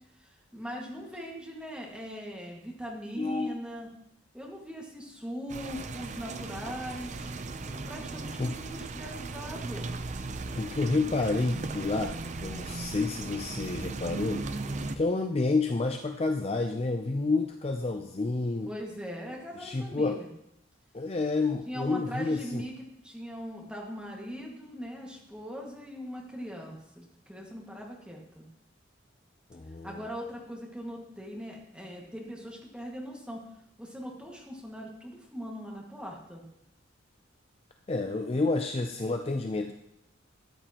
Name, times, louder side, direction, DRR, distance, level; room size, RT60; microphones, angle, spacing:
voice 1, 0.2-3.9 4.3-7.3 7.7-10.0 14.6-14.9 18.7-20.3 21.7-22.7 23.0-28.5 29.8-33.5 33.8-36.4, equal, 5° right, -2 dB, 1.8 m, -40 dB
voice 2, 3.2-3.6 8.4-8.5 10.5-14.5 15.0-18.7 19.6-20.2 20.9-22.6 29.5-30.0 37.9-39.7, left 3 dB, 30° left, 4 dB, 0.4 m, -29 dB
sound 1, 5.5-15.0, right 3 dB, 35° right, 0.5 m, -37 dB
13.5 x 8.6 x 2.9 m, 0.79 s
head